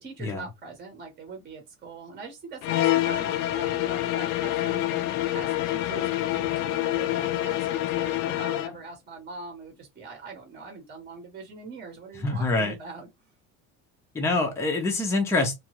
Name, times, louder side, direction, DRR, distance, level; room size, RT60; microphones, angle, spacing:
voice 1, 0.0-5.0 5.3-13.1, right 4 dB, 25° right, 0.9 m, -42 dB
sound 1, 2.6-8.8, left 15 dB, 80° left, 0.5 m, -26 dB
voice 2, 12.1-12.7 14.1-15.5, left 2 dB, 10° left, 0.6 m, -25 dB
2.8 x 2.4 x 2.9 m
cardioid pair, 155°, 35 cm